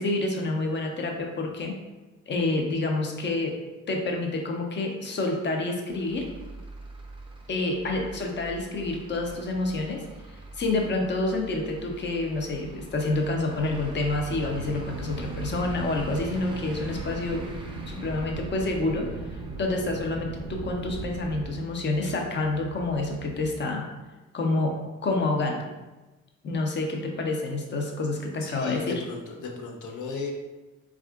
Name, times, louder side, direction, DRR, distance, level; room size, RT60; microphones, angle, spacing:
voice 1, 0.0-1.8 2.3-3.5 3.9-6.3 7.5-10.0 10.6-17.4 17.9-19.1 19.3-23.8 24.3-25.6 26.4-28.9, left 2 dB, 35° left, 1 dB, 0.6 m, -28 dB
Truck / Idling, 5.9-23.6, right 2 dB, 15° right, 0.6 m, -44 dB
sound 1, 14.3-21.5, right 3 dB, 65° right, 0.5 m, -38 dB
voice 2, 28.4-30.3, left 5 dB, 75° left, 1 dB, 0.6 m, -34 dB
3.5 x 2.4 x 2.3 m, 1.1 s
cardioid pair, 90°, 30 cm